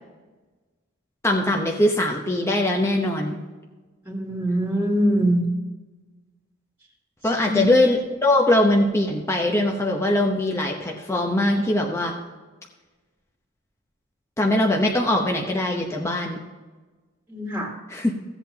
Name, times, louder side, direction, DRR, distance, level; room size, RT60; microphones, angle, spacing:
voice 1, 1.2-3.4 7.2-12.2 14.4-16.4 17.9-18.1, left 1 dB, 15° left, 0 dB, 0.8 m, -21 dB
voice 2, 4.0-5.4 7.4-7.6 17.3-17.7, equal, 10° right, -2 dB, 1.8 m, -23 dB
15.5 x 8.1 x 2.9 m, 1.3 s
head